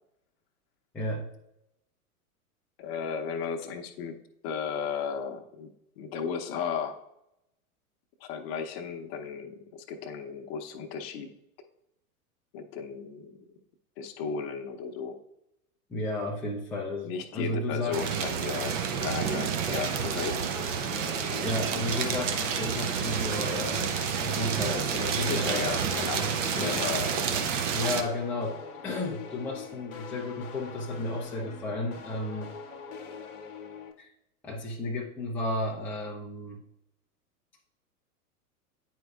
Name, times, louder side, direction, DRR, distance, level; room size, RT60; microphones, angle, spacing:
voice 1, 0.9-1.3 15.9-18.0 21.4-25.8 26.2-26.8 27.7-32.5 34.0-34.1 34.4-36.6, left 2 dB, 5° left, -3 dB, 0.4 m, -33 dB
voice 2, 2.8-4.2 4.4-5.7 6.0-7.0 8.2-11.3 12.5-13.4 14.0-15.1 17.0-18.8 19.0-20.4 20.9-21.0 25.2-26.2 26.5-27.2, left 6 dB, 40° left, 6 dB, 0.8 m, -35 dB
sound 1, 17.9-28.0, right 7 dB, 55° right, 0.8 m, -29 dB
sound 2, 18.9-33.9, left 5 dB, 65° left, 1.0 m, -44 dB
9.3 x 4.5 x 2.4 m, 0.83 s
figure-of-eight pair, 100°, 45 cm